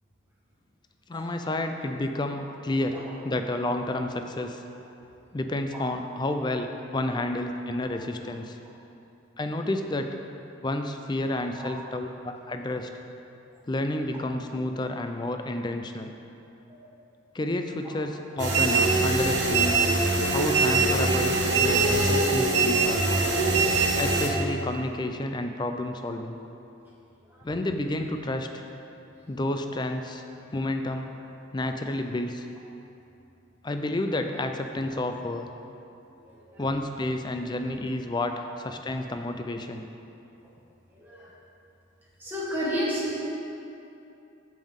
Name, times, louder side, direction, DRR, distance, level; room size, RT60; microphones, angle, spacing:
voice 1, 1.1-4.6 5.3-8.6 9.4-10.2 10.6-12.9 13.7-16.1 17.3-19.8 20.3-23.1 24.0-26.4 27.4-28.6 29.3-30.2 30.5-31.1 31.5-32.5 33.6-35.5 36.6-39.9, left 1 dB, 20° left, 6 dB, 0.4 m, -30 dB
sound 1, 18.4-24.3, right 3 dB, 55° right, 1.3 m, -23 dB
voice 2, 42.2-43.2, equal, 10° right, -7 dB, 1.8 m, -32 dB
15.0 x 5.4 x 3.7 m, 2.8 s
head